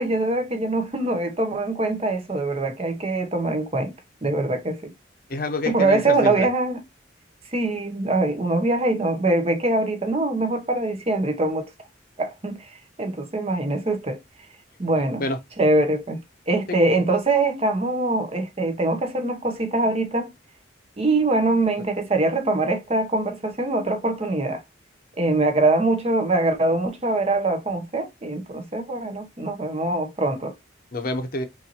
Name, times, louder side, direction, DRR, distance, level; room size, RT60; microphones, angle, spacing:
voice 1, 0.0-3.9 4.2-4.9 5.7-6.8 7.5-11.7 12.2-12.7 13.0-14.2 14.8-15.2 15.6-20.3 21.0-24.6 25.2-30.5, right 2 dB, 30° right, 0.8 m, -23 dB
voice 2, 5.3-6.4 15.2-15.4 16.7-16.8 30.9-31.4, left 2 dB, 50° left, 0.8 m, -27 dB
5.6 x 2.6 x 2.8 m
head